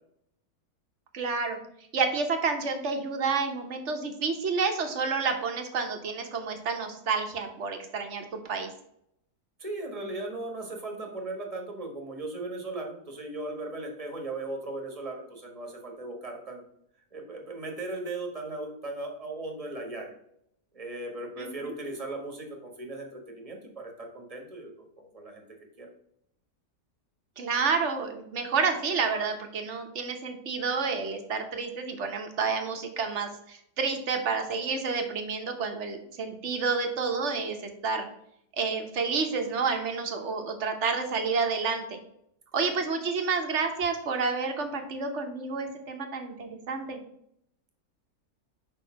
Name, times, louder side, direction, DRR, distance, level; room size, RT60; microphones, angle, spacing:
voice 1, 1.1-1.6 1.9-8.7 21.4-21.7 27.4-37.6 37.8-38.1 38.6-42.0 42.5-47.0, right 4 dB, 50° right, 5 dB, 1.2 m, -29 dB
voice 2, 9.6-16.6 17.1-20.1 20.7-25.4 25.8-25.9 42.5-42.8, right 2 dB, 25° right, 2 dB, 1.2 m, -37 dB
5.3 x 4.6 x 5.6 m, 0.74 s
omnidirectional pair, 1.7 m